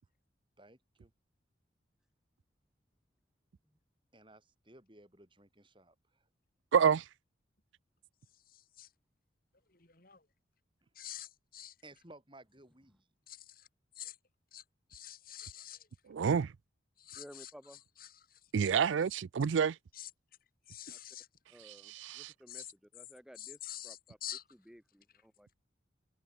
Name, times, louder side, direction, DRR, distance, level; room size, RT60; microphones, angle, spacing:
voice 1, 0.6-1.1 4.1-6.3 10.8-10.9 11.8-13.1, right 2 dB, 25° right, 5.4 m, -58 dB
voice 2, 6.7-7.1 16.1-16.5 18.5-19.8 21.6-22.3, right 6 dB, 75° right, 0.4 m, -29 dB
voice 3, 8.5-8.9 9.7-10.2 10.9-11.7 13.3-13.7 14.0-14.2 14.5-14.6 14.9-15.9 17.0-17.5 18.0-18.4 19.9-20.1 20.7-21.3 22.5-22.7 23.4-24.4, left 12 dB, 50° left, 3.4 m, -47 dB
voice 4, 17.1-17.8 20.9-21.0 21.5-24.2 24.5-25.5, equal, 5° right, 2.2 m, -56 dB
head